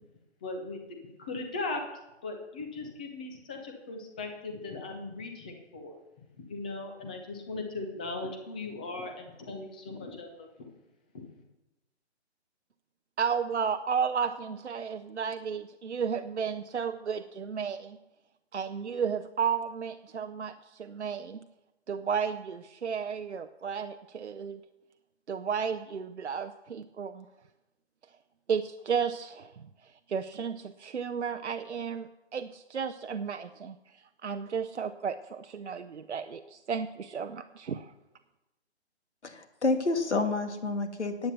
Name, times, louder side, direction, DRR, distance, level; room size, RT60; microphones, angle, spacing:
voice 1, 0.4-1.8 2.2-10.5 11.1-11.2, left 3 dB, 10° left, 4 dB, 0.4 m, -38 dB
voice 2, 13.2-18.0 18.5-21.4 21.9-24.6 25.3-27.3 28.5-29.6 30.1-37.9, right 6 dB, 80° right, 9 dB, 0.7 m, -33 dB
voice 3, 39.2-41.3, left 3 dB, 80° left, 7 dB, 1.8 m, -29 dB
10.5 x 8.7 x 6.7 m, 0.97 s
figure-of-eight pair, 140°, 34 cm